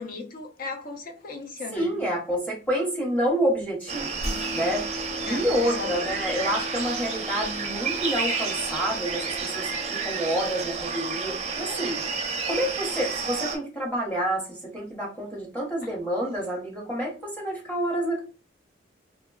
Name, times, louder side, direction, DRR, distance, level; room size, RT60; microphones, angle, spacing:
voice 1, 0.0-2.0 5.3-6.0 16.2-16.3, left 3 dB, 45° left, 0.5 m, -37 dB
voice 2, 1.7-4.2 4.5-4.9 5.2-12.0 12.5-18.2, equal, 10° left, 0.9 m, -28 dB
sound 1, 3.9-13.6, right 5 dB, 35° right, 0.5 m, -31 dB
sound 2, 4.2-10.7, left 1 dB, 65° left, 1.2 m, -39 dB
2.9 x 2.2 x 2.2 m
head